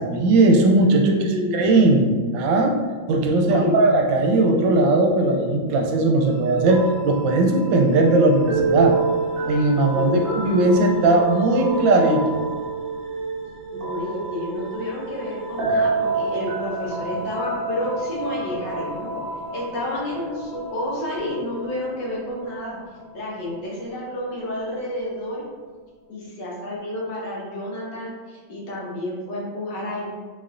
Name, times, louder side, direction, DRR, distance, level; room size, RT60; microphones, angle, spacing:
voice 1, 0.0-1.2 1.5-2.8 3.1-9.0 9.5-12.4, right 2 dB, 85° right, 2 dB, 1.3 m, -18 dB
voice 2, 1.1-1.7 3.5-3.8 9.9-10.2 13.7-19.1 19.5-22.8 23.1-25.4 26.1-30.1, left 1 dB, 70° left, -4 dB, 1.5 m, -30 dB
sound 1, 6.2-23.6, right 3 dB, 55° right, 1.0 m, -29 dB
4.0 x 3.1 x 2.5 m, 1.5 s
omnidirectional pair, 2.0 m